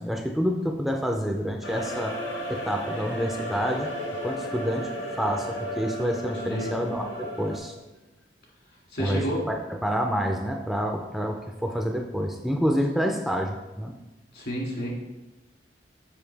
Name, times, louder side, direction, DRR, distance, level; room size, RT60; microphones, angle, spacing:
voice 1, 0.0-2.1 2.5-3.9 4.2-7.7 9.0-9.2 9.5-9.6 9.8-13.9, equal, ahead, 2 dB, 0.4 m, -28 dB
sound 1, 1.6-7.6, equal, 85° left, 1.4 m, -34 dB
voice 2, 6.5-6.8 8.9-9.4 14.3-14.9, equal, 70° left, -2 dB, 1.9 m, -30 dB
7.0 x 5.3 x 3.3 m, 1.1 s
head